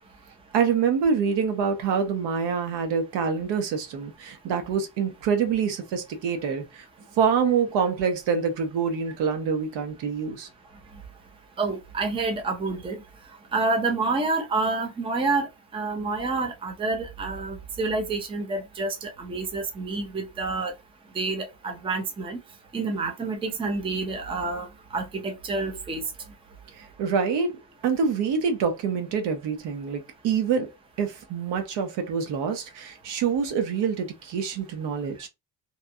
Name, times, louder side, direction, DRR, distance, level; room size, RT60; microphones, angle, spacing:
voice 1, 0.5-6.8 7.2-10.5 26.8-30.7 31.0-35.3, right 6 dB, 75° right, 0.9 m, -26 dB
voice 2, 11.6-13.0 13.5-20.7 21.2-22.4 22.7-24.7 24.9-26.0, right 3 dB, 15° right, 0.5 m, -28 dB
2.9 x 2.4 x 2.6 m
cardioid pair, 150°, 42 cm